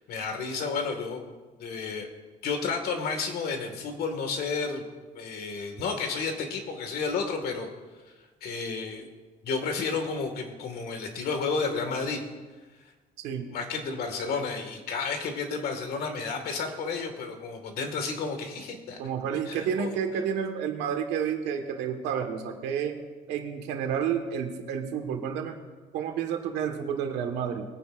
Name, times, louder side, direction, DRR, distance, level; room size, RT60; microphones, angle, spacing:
voice 1, 0.1-1.2 1.6-2.1 2.4-4.8 5.2-7.7 8.4-9.0 9.4-12.2 13.5-19.0 19.4-20.2, left 4 dB, 70° left, 5 dB, 2.0 m, -31 dB
voice 2, 19.0-23.0 23.3-25.5 25.9-27.6, right 7 dB, 90° right, 4 dB, 1.6 m, -30 dB
21.5 x 9.7 x 2.6 m, 1.3 s
cardioid pair, 110°, 17 cm